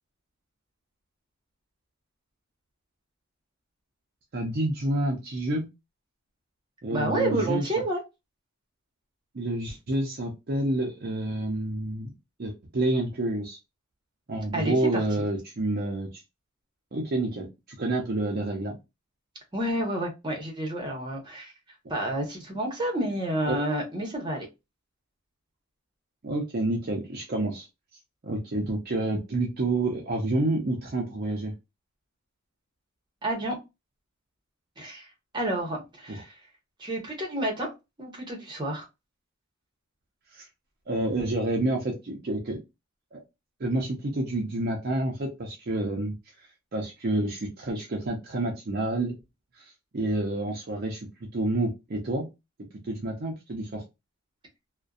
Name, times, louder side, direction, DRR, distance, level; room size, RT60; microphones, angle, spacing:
voice 1, 4.3-5.7 6.8-7.6 9.3-12.1 12.4-13.6 14.3-16.1 16.9-17.5 17.8-18.8 23.5-23.6 26.2-27.7 28.2-31.5 36.1-36.2 40.3-40.5 40.9-42.6 43.1-43.2 43.6-46.2 46.7-49.1 49.6-52.3 52.9-53.8, right 2 dB, 45° right, 0.5 m, -28 dB
voice 2, 6.9-8.0 14.5-15.3 19.5-21.5 21.9-24.5 33.2-33.6 34.8-35.1 35.3-36.4 36.8-37.7 38.0-38.9, right 1 dB, 20° right, 0.9 m, -29 dB
2.6 x 2.1 x 2.3 m
head